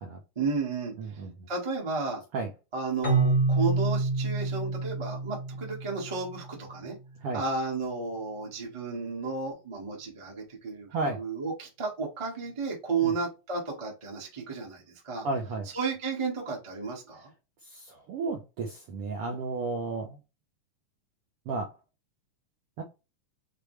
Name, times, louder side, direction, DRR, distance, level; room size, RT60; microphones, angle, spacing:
voice 1, 0.3-2.2 2.7-7.0 7.3-10.9 11.2-15.2 15.7-17.3, right 4 dB, 35° right, -2 dB, 0.4 m, -33 dB
voice 2, 1.0-1.3 2.3-2.5 7.2-7.4 10.9-11.2 13.0-13.1 15.2-15.7 17.7-20.2 21.5-21.7 22.8-22.9, right 3 dB, 80° right, 2 dB, 1.3 m, -33 dB
Keyboard (musical), 3.0-6.7, right 3 dB, 25° left, 0.7 m, -28 dB
6.6 x 2.2 x 3.2 m, 0.27 s
omnidirectional pair, 3.6 m